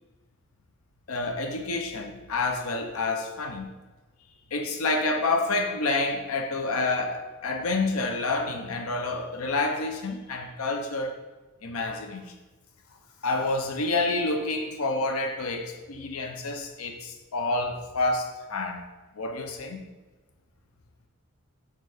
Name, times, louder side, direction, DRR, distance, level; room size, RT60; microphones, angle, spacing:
voice 1, 1.1-3.7 4.5-11.2 11.6-12.2 13.2-18.8 19.2-19.8, left 3 dB, 75° left, 0.6 m, -28 dB
4.6 x 4.4 x 4.8 m
head